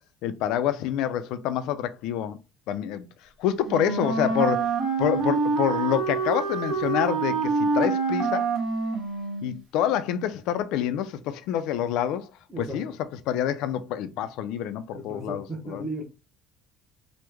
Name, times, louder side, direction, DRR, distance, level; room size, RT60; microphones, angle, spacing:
voice 1, 0.2-2.4 2.7-3.1 3.4-4.7 5.0-8.5 9.4-12.3 12.6-12.9 13.3-15.8, left 10 dB, 75° left, 0.3 m, -27 dB
Wind instrument woodwind instrument, 3.6-9.6, right 4 dB, 55° right, 1.1 m, -26 dB
voice 2, 12.5-12.8 14.9-16.0, right 1 dB, 15° right, 0.8 m, -35 dB
3.0 x 2.0 x 3.4 m
cardioid pair, 120°, 0 cm